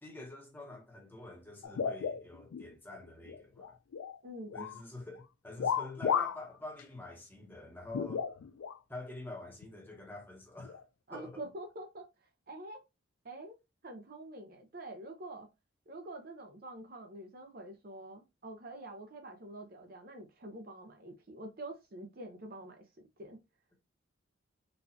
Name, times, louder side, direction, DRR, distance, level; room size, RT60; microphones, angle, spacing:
voice 1, 0.0-3.8 4.5-8.3 8.9-10.8 11.1-11.5, left 2 dB, 10° left, 0.9 m, -47 dB
sound 1, 1.6-2.7 3.1-4.2 4.5-4.8 5.6-6.5 6.8-6.9 7.9-8.8 9.6-9.7 10.6-10.8, left 7 dB, 80° left, 0.3 m, -34 dB
voice 2, 4.2-4.7 11.1-12.1 12.5-12.8 13.2-13.5 13.8-15.5 15.9-22.8 23.2-23.4, right 1 dB, 45° right, 0.6 m, -46 dB
4.0 x 2.4 x 2.7 m
head